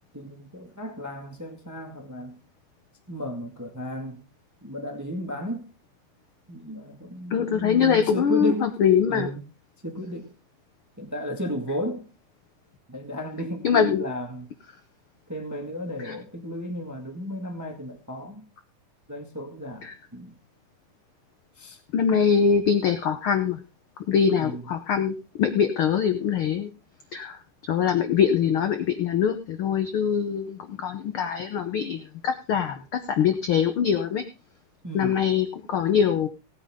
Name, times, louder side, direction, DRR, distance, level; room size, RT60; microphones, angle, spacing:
voice 1, 0.1-2.4 3.1-4.2 4.6-5.7 6.5-8.8 9.1-9.5 9.8-10.3 11.0-12.1 12.9-14.5 15.3-18.5 19.1-20.4 21.6-21.8 24.3-24.7 34.8-35.2, equal, 10° right, 4 dB, 0.9 m, -34 dB
voice 2, 7.3-9.3 13.6-14.0 21.9-23.6 24.1-26.7 27.1-27.4 27.7-32.8 33.1-34.2 34.9-36.3, left 7 dB, 80° left, 8 dB, 1.1 m, -23 dB
17.5 x 9.1 x 3.6 m, 0.30 s
omnidirectional pair, 3.7 m